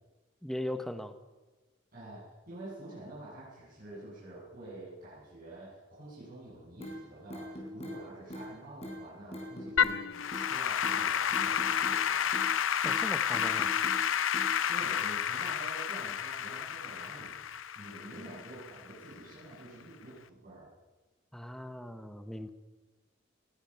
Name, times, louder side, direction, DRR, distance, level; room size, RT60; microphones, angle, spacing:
voice 1, 0.4-1.2 12.8-13.8 21.3-22.5, left 1 dB, ahead, 8 dB, 0.9 m, -39 dB
voice 2, 1.9-12.4 14.7-20.7, right 2 dB, 45° right, -9 dB, 7.4 m, -48 dB
sound 1, 6.8-7.0 7.3-8.0 8.3-8.5 8.8-9.0 9.3-10.0 10.3-10.5 10.8-11.0 11.3-12.0 12.3-12.5 12.8-13.0 13.3-14.0 14.3-14.5, equal, 30° left, 3.9 m, -42 dB
Applause / Keyboard (musical), 9.8-19.1, left 8 dB, 70° left, 0.6 m, -31 dB
19.0 x 13.0 x 5.7 m, 1.2 s
head